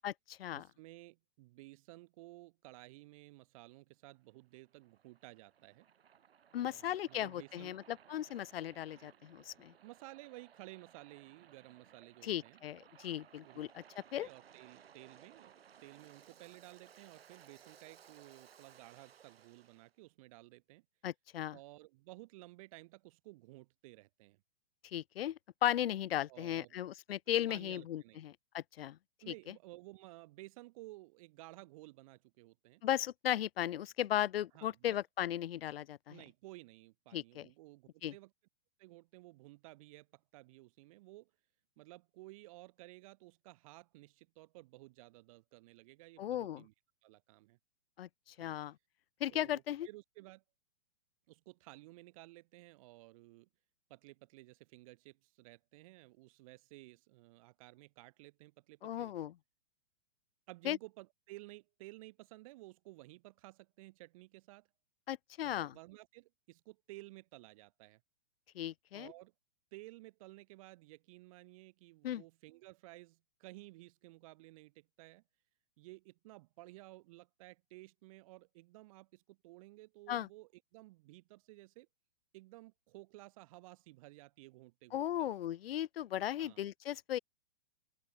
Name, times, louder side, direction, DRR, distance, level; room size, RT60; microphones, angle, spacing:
voice 1, 0.0-0.7 6.5-9.7 12.2-13.8 14.1-14.3 21.0-21.6 24.9-29.0 29.5-29.6 32.8-36.2 37.1-37.5 38.0-38.1 46.2-46.6 48.0-48.1 48.4-48.7 49.2-49.9 58.8-59.3 60.6-60.8 65.1-65.7 68.5-69.1 72.0-72.2 80.1-80.3 84.9-87.2, left 12 dB, 80° left, 0.6 m, -36 dB
voice 2, 0.5-5.9 6.6-7.8 9.8-12.6 13.4-13.6 14.1-15.5 15.8-20.8 21.5-24.4 26.3-26.7 27.3-28.2 29.2-32.8 34.5-35.0 36.1-38.3 38.8-41.3 41.8-46.7 47.0-47.6 48.4-48.6 49.3-50.4 51.3-53.5 53.9-59.1 60.5-64.7 65.4-68.0 68.9-69.3 69.7-75.2 75.8-81.9 82.3-85.3 86.4-86.6, right 20 dB, 35° right, 2.6 m, -55 dB
Waves surf, 4.1-19.9, right 8 dB, 85° right, 3.0 m, -62 dB
open air
hypercardioid pair, 165°, 29 cm